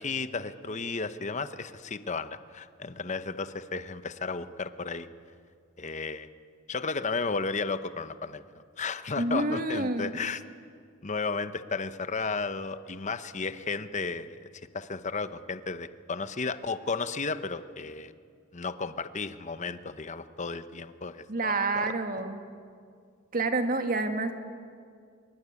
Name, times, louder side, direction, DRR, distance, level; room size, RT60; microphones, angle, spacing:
voice 1, 0.0-5.1 5.8-6.3 6.7-8.4 8.8-10.4 11.0-14.5 14.7-18.1 18.5-21.9, left 4 dB, 35° left, 12 dB, 0.9 m, -33 dB
voice 2, 9.2-10.1 21.3-22.4 23.3-24.3, right 2 dB, 45° right, 6 dB, 2.0 m, -28 dB
24.5 x 22.5 x 9.8 m, 2.2 s
head